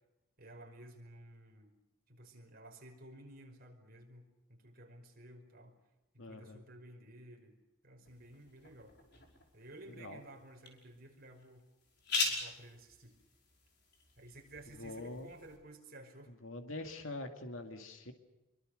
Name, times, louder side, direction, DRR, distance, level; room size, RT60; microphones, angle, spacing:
voice 1, 0.4-1.7 2.1-5.8 6.1-7.5 7.8-9.0 9.5-11.7 12.2-13.1 14.2-16.3, right 1 dB, 45° right, 3 dB, 5.2 m, -54 dB
voice 2, 6.2-6.6 10.0-10.2 14.8-15.3 16.4-18.1, left 2 dB, 75° left, 5 dB, 2.4 m, -44 dB
sound 1, 8.1-15.6, left 3 dB, 55° left, 5.6 m, -42 dB
26.5 x 23.5 x 6.6 m, 1.0 s
head